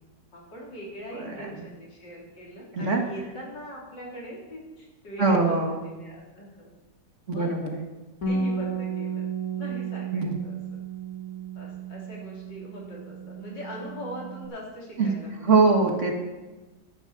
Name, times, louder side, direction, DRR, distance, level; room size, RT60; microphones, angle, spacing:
voice 1, 0.3-6.7 7.3-7.5 8.3-9.3 9.6-10.6 11.6-15.5, equal, 80° left, -3 dB, 4.2 m, -41 dB
voice 2, 1.1-1.6 2.7-3.0 5.2-5.8 7.3-7.8 10.1-10.4 15.0-15.1 15.4-16.1, right 3 dB, 45° right, 2 dB, 1.9 m, -23 dB
Bass guitar, 8.2-14.5, right 5 dB, 55° left, 2.5 m, -33 dB
11.5 x 10.0 x 7.1 m, 1.2 s
omnidirectional pair, 1.9 m